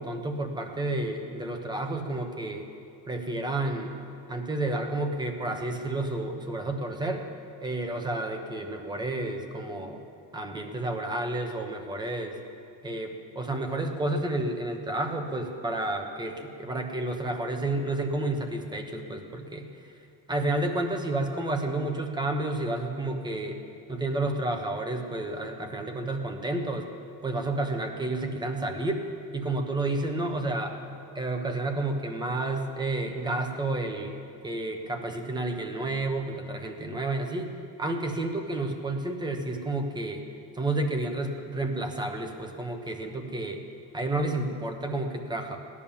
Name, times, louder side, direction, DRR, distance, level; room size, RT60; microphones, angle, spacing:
voice 1, 0.0-2.7 3.1-4.0 4.3-7.3 7.6-10.0 10.3-12.4 12.8-19.7 20.3-23.6 23.9-26.9 27.2-29.0 29.3-30.8 31.1-34.2 34.4-37.5 37.8-40.2 40.5-43.6 43.9-45.6, right 2 dB, 10° right, 5 dB, 1.1 m, -30 dB
17.0 x 11.0 x 7.1 m, 2.7 s
cardioid pair, 175°, 43 cm